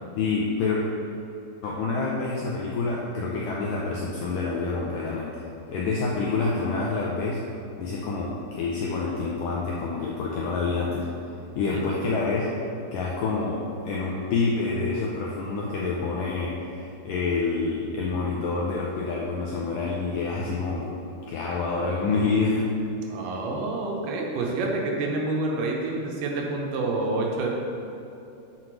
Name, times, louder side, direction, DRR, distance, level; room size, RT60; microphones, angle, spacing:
voice 1, 0.2-0.8 1.6-7.4 7.8-11.1 11.6-12.5 12.9-20.9 21.3-22.7, left 4 dB, 80° left, -4 dB, 1.9 m, -27 dB
voice 2, 23.1-27.5, right 2 dB, 75° right, 0 dB, 2.7 m, -28 dB
6.4 x 5.9 x 6.0 m, 2.9 s
omnidirectional pair, 4.7 m